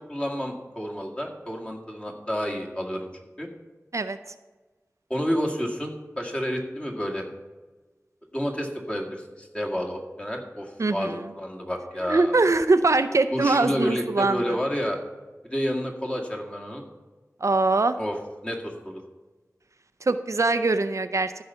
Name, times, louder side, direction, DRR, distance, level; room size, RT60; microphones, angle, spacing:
voice 1, 0.1-3.1 3.4-3.5 5.1-7.2 8.3-12.4 13.3-15.0 15.4-16.8 18.0-18.2 18.4-19.0, equal, 20° left, -1 dB, 2.0 m, -30 dB
voice 2, 10.8-11.2 12.1-14.6 17.4-18.0 20.0-21.4, right 3 dB, 60° right, 10 dB, 0.5 m, -22 dB
14.0 x 5.7 x 5.6 m, 1.3 s
wide cardioid pair, 50°, 6 cm